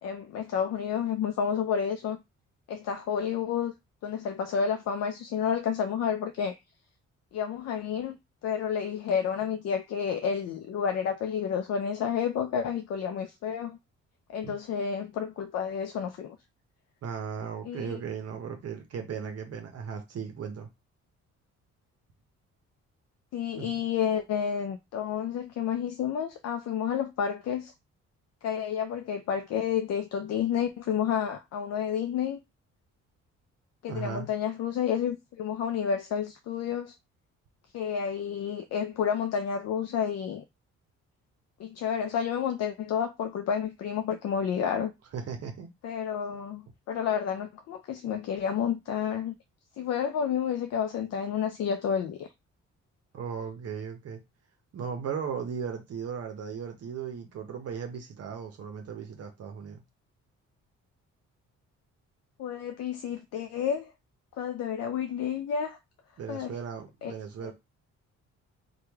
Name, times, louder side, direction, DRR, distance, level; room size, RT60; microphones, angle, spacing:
voice 1, 0.0-2.2 2.7-3.7 4.0-6.6 7.3-8.2 8.4-13.8 14.3-16.4 17.7-18.0 23.3-27.7 28.4-32.4 33.8-36.9 37.7-40.4 41.6-44.9 45.8-49.3 49.8-52.3 62.4-63.9 64.4-65.8 66.3-66.5 67.0-67.1 67.4-67.5, left 7 dB, 60° left, 0.4 m, -30 dB
voice 2, 17.0-20.7 23.6-23.8 33.9-34.3 45.1-45.7 53.1-54.2 54.7-59.8 66.2-67.5, right 7 dB, 55° right, 0.7 m, -37 dB
3.0 x 2.2 x 3.4 m
cardioid pair, 90°, 30 cm